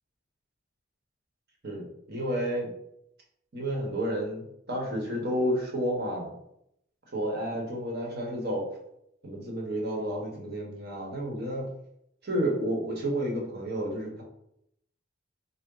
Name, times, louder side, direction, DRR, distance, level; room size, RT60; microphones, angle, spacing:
voice 1, 1.6-2.7 3.5-4.4 4.7-6.3 7.1-8.7 9.2-11.7 12.2-14.2, equal, 50° right, -1 dB, 0.9 m, -31 dB
3.8 x 2.0 x 3.7 m, 0.78 s
head